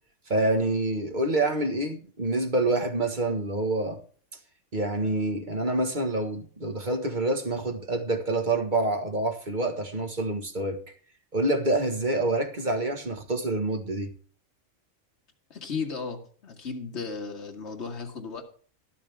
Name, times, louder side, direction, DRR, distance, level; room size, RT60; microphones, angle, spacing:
voice 1, 0.3-4.0 4.7-10.8 11.3-14.1, right 2 dB, 35° right, 1.6 m, -27 dB
voice 2, 15.5-18.4, left 5 dB, 55° left, 2.0 m, -35 dB
13.0 x 12.0 x 3.5 m
omnidirectional pair, 1.4 m